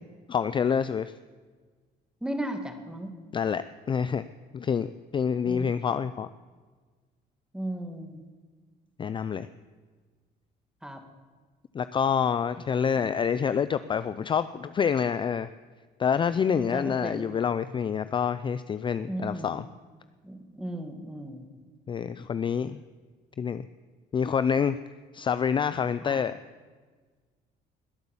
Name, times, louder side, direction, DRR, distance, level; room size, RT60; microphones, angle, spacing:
voice 1, 0.3-1.1 3.3-4.3 4.5-6.3 9.0-9.5 11.7-15.5 16.0-19.6 21.9-22.8 23.4-23.6 24.1-24.8 25.1-26.4, left 7 dB, 30° left, 14 dB, 0.4 m, -27 dB
voice 2, 2.2-3.1 5.4-5.7 7.5-8.2 10.8-11.0 16.4-17.3 19.1-19.6 20.2-21.5 26.0-26.2, right 1 dB, 5° right, 6 dB, 1.9 m, -35 dB
20.0 x 8.2 x 7.2 m, 1.4 s
cardioid pair, 110°, 17 cm